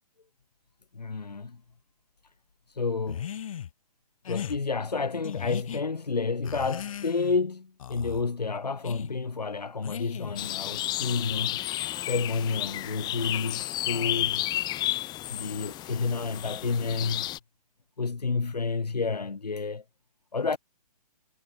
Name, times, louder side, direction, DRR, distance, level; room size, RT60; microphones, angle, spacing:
voice 1, 0.9-1.6 2.7-3.3 4.3-11.6 12.1-14.5 15.3-17.3 18.0-19.8 20.3-20.6, left 4 dB, 85° left, 7.0 m, -30 dB
sound 1, 3.1-3.7 4.2-4.6 5.2-5.8 6.4-7.4 7.8-8.2 8.8-9.1 9.8-10.5, left 9 dB, 55° left, 2.3 m, -37 dB
sound 2, 10.4-17.4, left 15 dB, 20° left, 5.4 m, -32 dB
hypercardioid pair, 140°, 20 cm